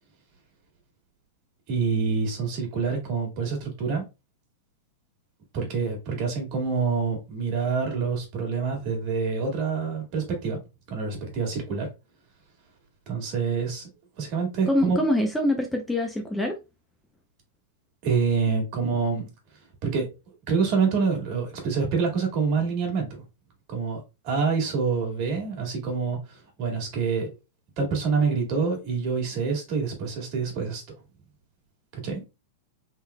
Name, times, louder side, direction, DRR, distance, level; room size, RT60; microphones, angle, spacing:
voice 1, 1.7-4.0 5.5-10.6 10.9-11.9 13.1-13.9 14.2-15.0 18.0-19.3 19.8-20.1 20.5-23.2 23.7-27.3 27.8-30.8 31.9-32.2, right 5 dB, 50° right, 1.9 m, -26 dB
voice 2, 14.7-16.5, left 1 dB, 5° left, 0.6 m, -24 dB
3.7 x 3.1 x 2.3 m
hypercardioid pair, 125°, 0 cm